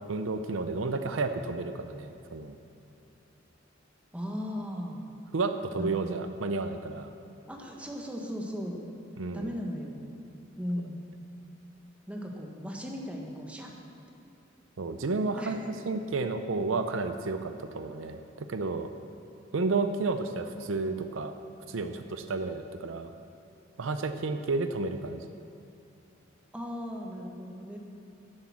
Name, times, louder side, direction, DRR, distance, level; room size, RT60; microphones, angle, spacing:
voice 1, 0.1-2.6 5.3-7.1 9.2-9.5 14.8-18.9 19.5-21.3 21.7-23.1 23.8-25.3, right 3 dB, 70° right, 8 dB, 0.6 m, -31 dB
voice 2, 4.1-5.0 5.7-6.4 7.5-8.8 9.3-9.9 10.6-11.0 12.1-13.7 15.4-15.6 26.5-27.8, equal, 5° right, 0 dB, 1.3 m, -37 dB
10.5 x 7.8 x 7.3 m, 2.8 s
head